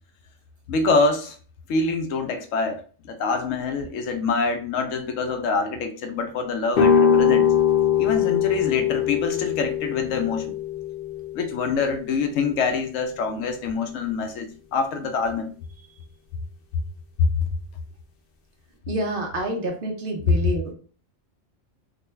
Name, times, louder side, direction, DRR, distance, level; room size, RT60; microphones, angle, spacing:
voice 1, 0.7-1.4 1.7-7.5 8.0-10.5 11.3-15.5 17.2-17.5, left 4 dB, 90° left, 1.0 m, -25 dB
sound 1, 6.7-12.5, left 8 dB, 55° left, 0.7 m, -22 dB
voice 2, 18.9-20.7, right 1 dB, 50° right, 0.9 m, -28 dB
3.7 x 2.2 x 3.3 m
omnidirectional pair, 1.3 m